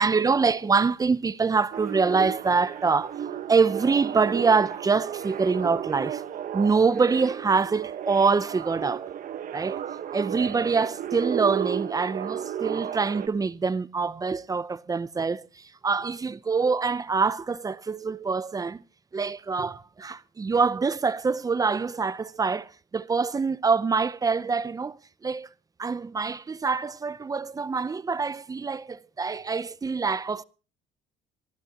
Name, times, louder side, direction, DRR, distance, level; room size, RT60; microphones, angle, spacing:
voice 1, 0.0-3.2 3.5-6.2 6.5-9.0 9.5-9.8 10.1-18.8 19.1-25.5 25.8-30.4, right 4 dB, 20° right, 0.6 m, -25 dB
sound 1, 1.7-13.3, right 10 dB, 55° right, 1.2 m, -34 dB
25.0 x 14.5 x 2.9 m
cardioid pair, 110°, 17 cm